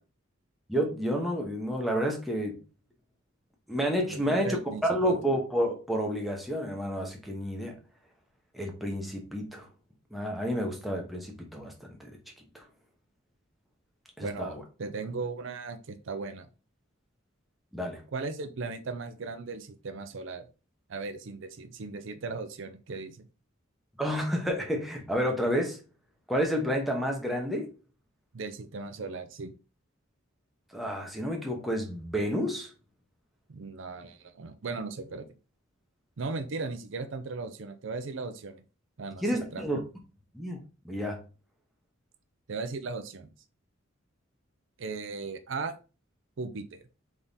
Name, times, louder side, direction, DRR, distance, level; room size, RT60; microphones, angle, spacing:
voice 1, 0.7-2.6 3.7-4.6 4.8-7.7 8.5-9.6 10.1-11.7 12.0-12.1 12.5-12.6 14.2-14.6 17.7-18.0 24.0-25.8 26.3-27.7 30.7-32.7 39.2-39.8 40.3-40.6 40.8-41.2, equal, ahead, 0 dB, 1.0 m, -30 dB
voice 2, 4.1-5.2 14.2-16.5 18.1-20.4 20.9-23.3 28.3-29.5 33.5-35.3 36.2-38.6 39.0-39.6 42.5-43.3 44.8-45.7 46.4-46.8, right 4 dB, 65° right, 9 dB, 0.5 m, -37 dB
3.7 x 3.6 x 4.0 m, 0.33 s
head